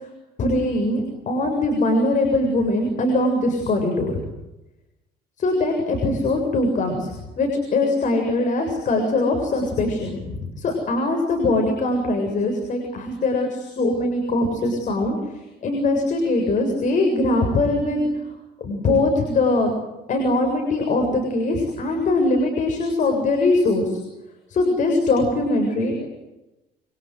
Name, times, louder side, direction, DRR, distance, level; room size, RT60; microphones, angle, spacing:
voice 1, 0.4-4.2 5.4-15.2 15.6-18.1 18.6-19.7 20.1-24.0 24.5-26.1, left 2 dB, 50° left, 3 dB, 7.3 m, -21 dB
29.0 x 25.5 x 8.1 m, 0.97 s
cardioid pair, 110°, 17 cm